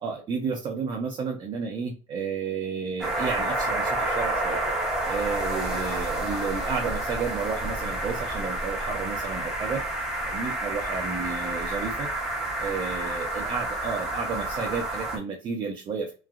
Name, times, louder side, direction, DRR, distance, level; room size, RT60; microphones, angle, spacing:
voice 1, 0.0-4.6 5.1-9.8 10.3-12.1 12.6-16.1, right 5 dB, 35° right, 1 dB, 0.6 m, -32 dB
sound 1, 3.0-15.2, right 1 dB, 5° right, 0.8 m, -29 dB
3.2 x 2.3 x 2.3 m, 0.35 s
cardioid pair, 135°, 14 cm